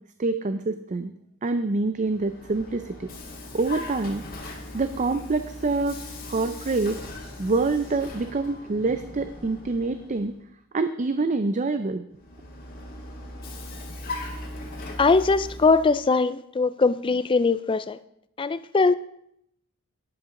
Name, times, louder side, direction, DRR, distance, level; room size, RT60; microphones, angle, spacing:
voice 1, 0.2-1.1 1.4-3.1 3.5-4.2 4.7-6.0 6.3-7.0 7.4-10.3 10.7-12.0, right 3 dB, 35° right, 0.5 m, -26 dB
Vehicle, 1.9-10.4 12.1-16.0, left 2 dB, 45° left, 2.3 m, -39 dB
voice 2, 15.0-18.0 18.4-18.9, left 4 dB, 25° left, 0.3 m, -21 dB
12.0 x 11.0 x 3.8 m
head